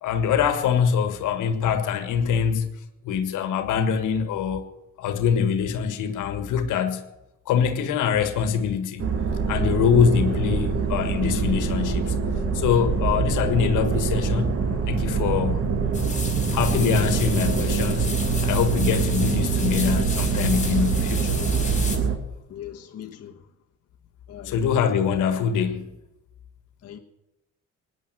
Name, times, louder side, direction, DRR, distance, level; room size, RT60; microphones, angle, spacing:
voice 1, 0.0-2.7 3.0-4.6 5.0-7.1 7.5-9.1 9.5-12.1 12.5-14.6 14.9-15.7 16.5-18.1 18.4-21.4 24.4-25.9, left 7 dB, 85° left, 1.6 m, -24 dB
sound 1, 9.0-22.2, right 5 dB, 50° right, 2.4 m, -24 dB
sound 2, 15.9-22.0, left 4 dB, 25° left, 3.8 m, -33 dB
voice 2, 22.5-23.4 24.3-24.6 26.8-27.0, left 10 dB, 55° left, 1.3 m, -40 dB
18.5 x 10.0 x 7.7 m
cardioid pair, 90°, 30 cm